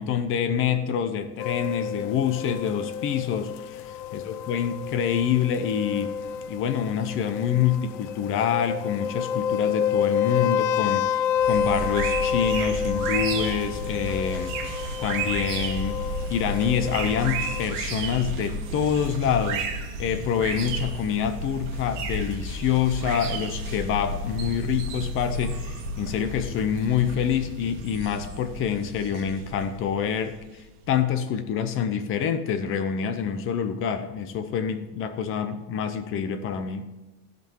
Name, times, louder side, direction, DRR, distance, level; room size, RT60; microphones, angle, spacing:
voice 1, 0.0-6.2 6.5-14.6 15.0-19.7 20.0-36.9, left 8 dB, 30° left, 9 dB, 0.6 m, -26 dB
sound 1, 1.4-17.6, left 7 dB, 75° left, 0.6 m, -29 dB
sound 2, 11.4-30.8, right 2 dB, 65° right, 1.6 m, -32 dB
15.5 x 5.3 x 4.5 m, 1.1 s
cardioid pair, 170°, 45 cm